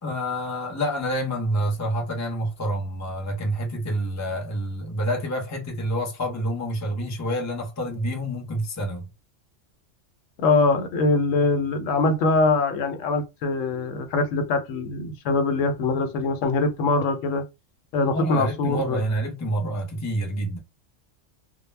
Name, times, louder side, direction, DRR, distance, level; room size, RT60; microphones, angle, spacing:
voice 1, 0.0-9.1 18.1-20.6, equal, 25° left, 0.4 m, -28 dB
voice 2, 10.4-17.4 17.9-19.0, left 3 dB, 85° left, 1.0 m, -23 dB
2.1 x 2.0 x 3.2 m
omnidirectional pair, 1.3 m